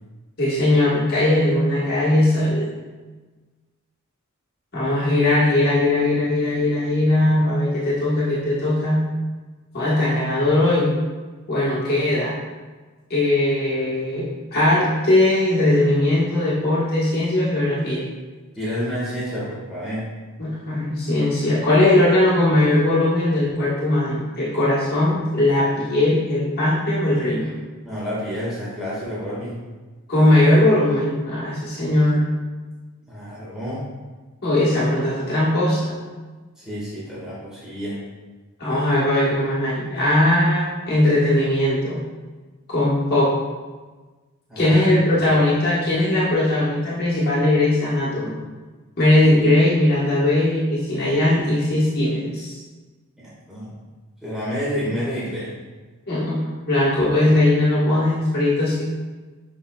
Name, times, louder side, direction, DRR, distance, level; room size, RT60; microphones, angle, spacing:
voice 1, 0.4-2.7 4.7-9.0 9.7-11.0 11.5-12.3 13.1-18.0 20.4-27.6 30.1-32.2 34.4-36.0 38.6-42.0 42.7-43.3 44.6-48.4 49.0-52.6 56.1-58.9, left 1 dB, 45° left, -8 dB, 1.4 m, -19 dB
voice 2, 18.6-20.1 27.8-29.6 33.1-33.8 36.6-38.0 44.5-44.9 45.3-45.4 53.2-53.7 54.2-55.5, equal, 5° right, -9 dB, 1.7 m, -29 dB
7.0 x 5.7 x 2.3 m, 1.3 s
head